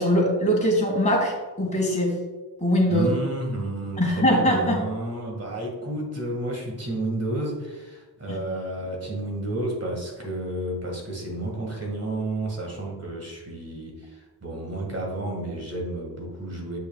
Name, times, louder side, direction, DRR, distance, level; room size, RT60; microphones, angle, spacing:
voice 1, 0.0-2.1 2.6-3.1 4.0-4.8, equal, 15° left, -2 dB, 2.2 m, -21 dB
voice 2, 2.9-16.8, right 1 dB, 35° right, -1 dB, 2.1 m, -31 dB
8.1 x 6.2 x 2.4 m, 1.2 s
wide cardioid pair, 85°, 40 cm